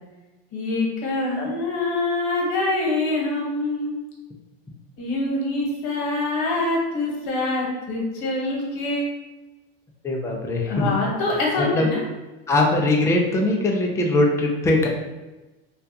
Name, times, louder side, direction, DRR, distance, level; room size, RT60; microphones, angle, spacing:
voice 1, 0.5-3.9 5.0-9.1 10.7-12.0, left 2 dB, 65° left, -2 dB, 1.0 m, -25 dB
voice 2, 10.0-11.0 11.6-11.9 12.5-14.9, left 2 dB, 10° left, 0 dB, 0.3 m, -21 dB
2.3 x 2.2 x 2.7 m, 1.1 s
supercardioid pair, 100°, 31 cm